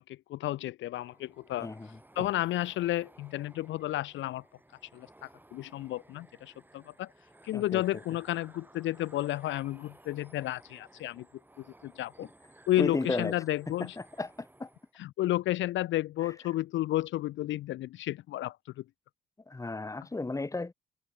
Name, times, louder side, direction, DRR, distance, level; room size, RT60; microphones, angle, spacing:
voice 1, 0.0-4.4 4.9-7.1 7.4-11.3 11.6-12.3 12.7-14.0 15.0-18.8, left 15 dB, 75° left, 0.5 m, -32 dB
sound 1, 1.0-14.9, right 1 dB, 10° right, 2.8 m, -56 dB
voice 2, 12.8-13.3 14.2-14.3 14.6-14.7 19.5-20.7, left 3 dB, 15° left, 1.4 m, -33 dB
cardioid pair, 90°, 20 cm